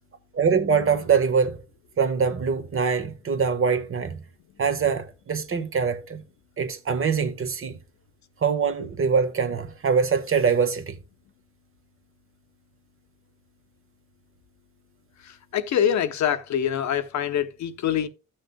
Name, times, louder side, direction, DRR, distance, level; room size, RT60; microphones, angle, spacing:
voice 1, 0.3-1.6 2.0-4.2 4.6-6.2 6.6-7.8 8.4-11.0, right 6 dB, 45° right, 1.4 m, -23 dB
voice 2, 15.5-18.1, left 9 dB, 65° left, 0.9 m, -24 dB
13.5 x 6.4 x 2.2 m
cardioid pair, 90°, 30 cm